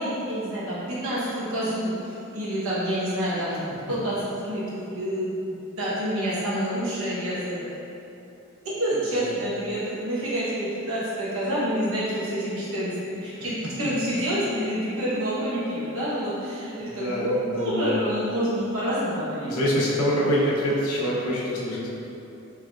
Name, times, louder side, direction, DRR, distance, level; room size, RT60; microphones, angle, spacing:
voice 1, 0.0-3.6 3.9-7.6 8.6-13.5 13.8-19.5, equal, 70° right, -9 dB, 1.0 m, -28 dB
voice 2, 16.8-18.0 19.4-21.9, equal, 85° left, -5 dB, 0.7 m, -25 dB
3.3 x 3.1 x 2.4 m, 2.9 s
head